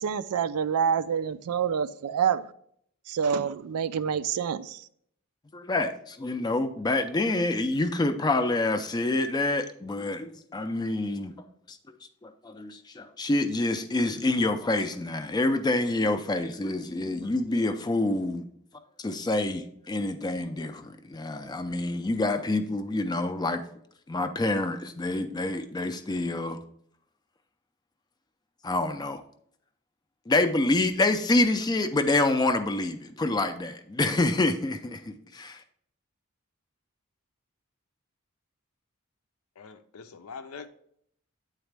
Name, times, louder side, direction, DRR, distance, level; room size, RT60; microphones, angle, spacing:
voice 1, 0.0-2.4 3.1-4.9, right 7 dB, 90° right, 0.4 m, -27 dB
voice 2, 5.5-11.3 11.7-11.8 12.2-18.4 19.0-23.6 24.1-26.6 28.6-29.2 30.3-35.6, left 2 dB, 20° left, 0.4 m, -27 dB
voice 3, 39.6-40.7, left 5 dB, 85° left, 0.6 m, -43 dB
8.7 x 4.0 x 3.3 m
head